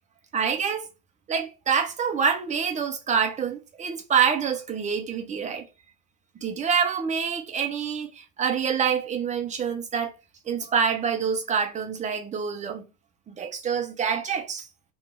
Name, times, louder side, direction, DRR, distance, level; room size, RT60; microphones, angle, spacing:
voice 1, 0.3-0.9 1.3-5.7 6.4-10.1 10.5-12.9 13.3-14.7, right 7 dB, 15° right, 0.6 m, -26 dB
3.2 x 3.1 x 4.5 m
hypercardioid pair, 115°, 47 cm